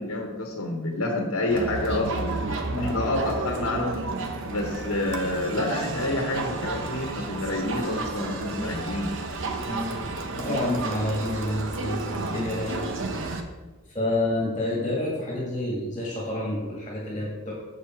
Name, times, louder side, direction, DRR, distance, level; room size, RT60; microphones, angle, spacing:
voice 1, 0.0-2.4 2.8-4.0 4.5-9.1, left 2 dB, 70° left, 1 dB, 1.1 m, -28 dB
Crowd, 1.5-13.4, right 3 dB, 60° right, 0.8 m, -32 dB
voice 2, 9.7-10.0 10.3-13.1 13.9-17.5, left 1 dB, 20° left, -3 dB, 1.7 m, -29 dB
6.6 x 6.5 x 4.4 m, 1.2 s
head